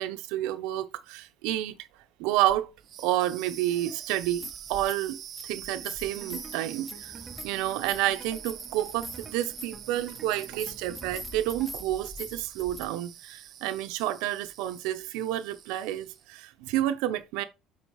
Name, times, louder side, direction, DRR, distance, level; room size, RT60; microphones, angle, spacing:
voice 1, 0.0-1.8 2.2-2.7 3.0-5.2 5.4-7.1 7.4-17.4, right 13 dB, 85° right, 0.8 m, -30 dB
sound 1, 2.5-2.6 4.1-5.1 5.4-12.9, equal, 5° left, 0.7 m, -43 dB
sound 2, 2.8-16.3, right 10 dB, 45° right, 0.8 m, -45 dB
sound 3, 6.2-11.7, right 4 dB, 15° right, 1.1 m, -49 dB
8.5 x 4.4 x 3.2 m
cardioid pair, 125°, 0 cm